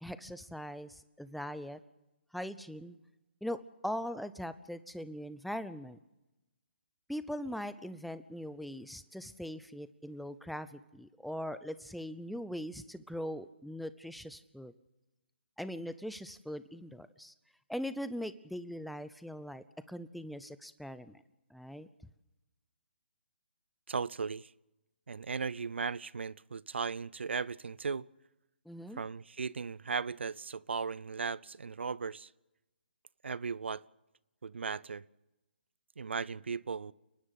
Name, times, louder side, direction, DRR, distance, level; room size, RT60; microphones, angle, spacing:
voice 1, 0.0-1.8 2.3-3.0 3.4-6.0 7.1-14.7 15.6-17.3 17.7-21.2 21.5-21.9 28.7-29.0, equal, ahead, 0.6 m, -41 dB
voice 2, 23.9-24.5 25.1-28.1 29.0-32.3 33.2-33.8 34.4-35.1 36.0-36.9, right 5 dB, 75° right, 0.6 m, -37 dB
30.0 x 11.0 x 8.1 m
hypercardioid pair, 150°, 6 cm